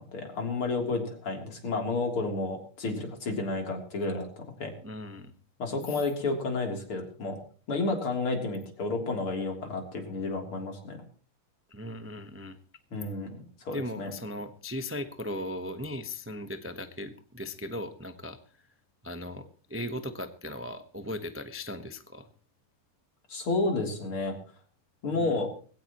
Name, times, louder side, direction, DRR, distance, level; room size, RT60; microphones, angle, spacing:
voice 1, 0.0-4.7 5.6-7.4 7.7-11.0 12.9-14.1 23.3-24.4 25.0-25.5, left 3 dB, 75° left, 3 dB, 4.3 m, -31 dB
voice 2, 4.8-5.3 5.9-6.0 11.7-12.6 13.7-18.4 19.0-22.3 25.1-25.4, left 1 dB, 15° right, 8 dB, 0.5 m, -38 dB
20.5 x 17.0 x 3.1 m, 0.41 s
omnidirectional pair, 2.4 m